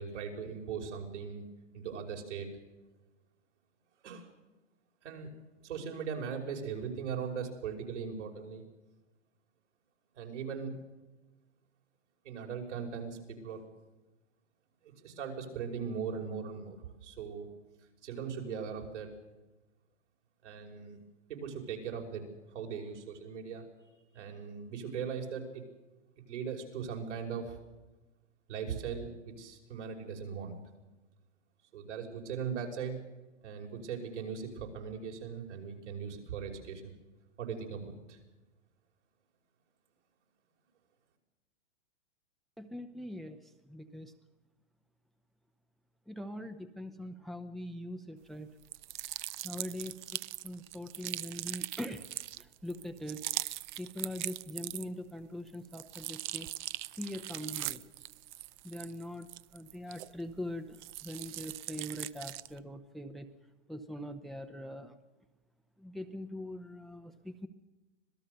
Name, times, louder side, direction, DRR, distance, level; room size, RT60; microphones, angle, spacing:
voice 1, 0.0-1.4 1.7-2.5 4.0-4.3 5.0-5.3 5.6-8.6 10.2-10.7 12.2-13.7 14.8-17.5 18.0-19.1 20.4-21.0 21.3-25.6 26.3-27.6 28.5-30.6 31.7-33.0 33.4-36.8 37.4-38.2, right 6 dB, 70° right, 1 dB, 5.8 m, -39 dB
voice 2, 42.6-44.1 46.1-48.5 49.4-52.1 52.4-53.2 53.8-56.5 57.0-57.9 58.6-63.3 63.7-64.9 65.8-67.5, left 1 dB, ahead, 9 dB, 0.7 m, -42 dB
sound 1, 48.6-55.1 55.5-60.4 60.7-62.6, right 16 dB, 40° right, 0.6 m, -41 dB
26.0 x 17.5 x 6.7 m, 1.1 s
hypercardioid pair, 135°, 36 cm